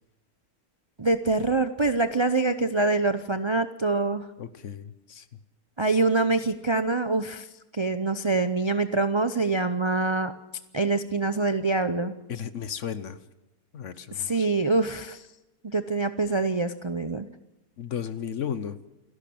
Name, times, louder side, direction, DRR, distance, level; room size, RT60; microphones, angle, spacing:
voice 1, 1.0-4.3 5.8-7.5 7.7-10.3 10.7-12.1 14.1-15.2 15.6-17.3, right 3 dB, 40° right, 10 dB, 0.4 m, -25 dB
voice 2, 4.4-5.2 12.3-13.2 13.7-14.4 17.8-18.8, left 8 dB, 55° left, 14 dB, 1.2 m, -34 dB
28.5 x 11.5 x 8.6 m, 0.97 s
omnidirectional pair, 1.6 m